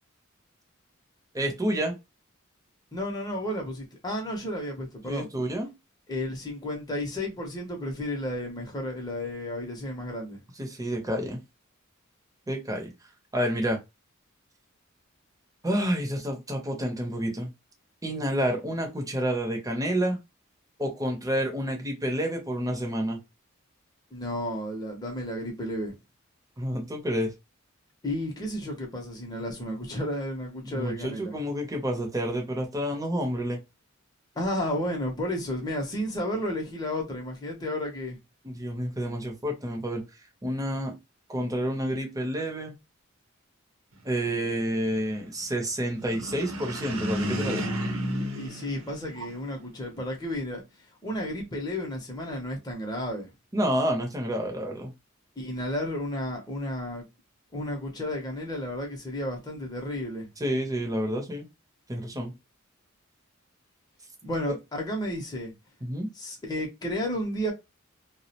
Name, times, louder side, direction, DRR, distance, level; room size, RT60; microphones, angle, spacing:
voice 1, 1.3-1.9 5.1-5.7 10.6-11.4 12.5-12.9 13.3-13.8 15.6-17.5 18.0-20.2 20.8-23.2 26.6-27.3 30.6-33.6 38.4-40.0 40.4-40.9 41.3-42.7 44.0-47.7 53.5-54.9 60.4-61.5 61.9-62.3 65.8-66.1, equal, 15° right, 0.6 m, -29 dB
voice 2, 2.9-5.3 6.1-10.4 24.1-25.9 28.0-31.3 34.4-38.2 48.4-50.6 51.0-53.3 55.4-57.1 57.5-60.3 64.2-65.5 66.2-67.5, left 1 dB, 20° left, 0.7 m, -32 dB
sound 1, 46.0-49.6, equal, 85° right, 0.7 m, -32 dB
2.3 x 2.1 x 2.7 m
head